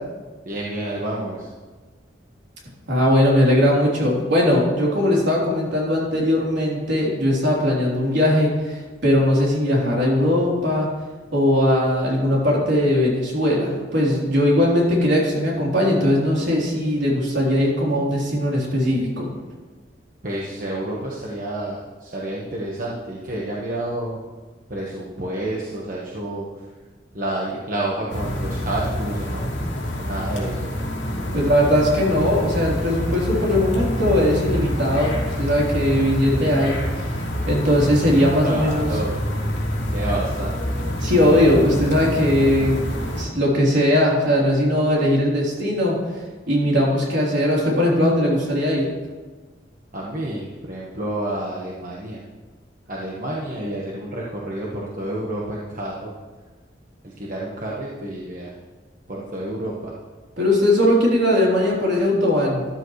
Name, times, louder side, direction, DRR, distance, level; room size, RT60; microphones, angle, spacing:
voice 1, 0.4-1.5 20.2-24.2 24.7-26.7 27.1-29.5 30.0-30.7 37.9-38.2 38.4-39.1 39.9-40.7 49.9-52.2 52.9-56.1 57.0-58.5 59.1-59.9, right 1 dB, 45° right, -4 dB, 1.4 m, -29 dB
voice 2, 2.9-10.9 11.3-19.3 31.3-37.1 37.5-38.9 41.0-42.8 43.1-46.0 46.5-48.9 60.4-62.7, left 1 dB, 70° right, -4 dB, 3.7 m, -19 dB
sound 1, 28.1-43.2, equal, 70° left, 2.6 m, -27 dB
13.0 x 12.0 x 3.2 m, 1.3 s
head